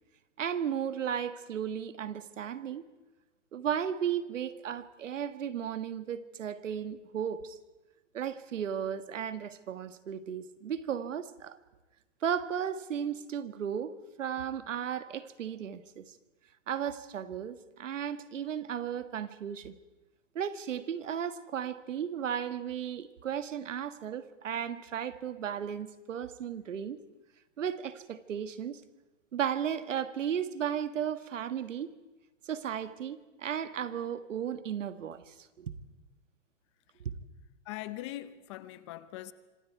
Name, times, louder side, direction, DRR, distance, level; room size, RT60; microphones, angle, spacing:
voice 1, 0.4-2.8 3.5-7.6 8.1-11.6 12.2-13.9 14.2-16.1 16.7-19.7 20.3-27.0 27.6-28.8 29.3-31.9 32.4-35.7, right 8 dB, 85° right, 1.7 m, -35 dB
voice 2, 37.7-39.3, left 15 dB, 25° left, 0.6 m, -41 dB
26.0 x 24.0 x 4.7 m
hypercardioid pair, 160°, 37 cm